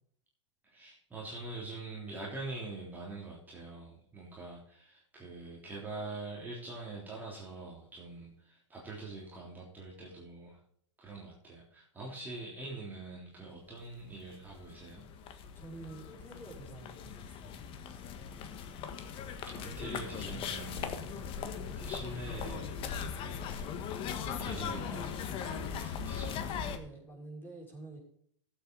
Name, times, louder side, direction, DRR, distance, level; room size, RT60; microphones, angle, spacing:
voice 1, 0.6-10.6 11.0-15.0 19.5-21.1 21.7-22.7 23.1-23.8 24.3-25.1 25.4-26.4, right 2 dB, 10° right, -5 dB, 3.4 m, -44 dB
sound 1, 14.0-14.1 14.3-26.8, left 7 dB, 35° left, 1.5 m, -39 dB
voice 2, 15.5-17.7 21.0-21.3 26.7-28.0, right 2 dB, 15° left, -1 dB, 5.7 m, -49 dB
14.5 x 8.2 x 4.0 m, 0.67 s
hypercardioid pair, 120°, 15 cm